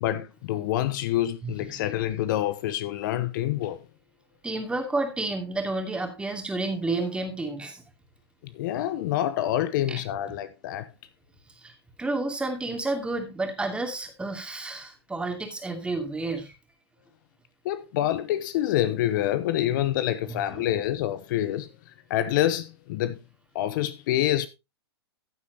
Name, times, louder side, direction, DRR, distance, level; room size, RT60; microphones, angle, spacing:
voice 1, 0.0-3.8 8.4-10.9 17.6-23.2 23.5-24.5, left 13 dB, 50° left, 0.8 m, -27 dB
voice 2, 4.4-7.8 9.9-10.0 11.6-11.7 12.0-16.5 20.3-20.6, right 2 dB, 5° right, 2.6 m, -30 dB
14.5 x 8.4 x 2.9 m
hypercardioid pair, 115°, 14 cm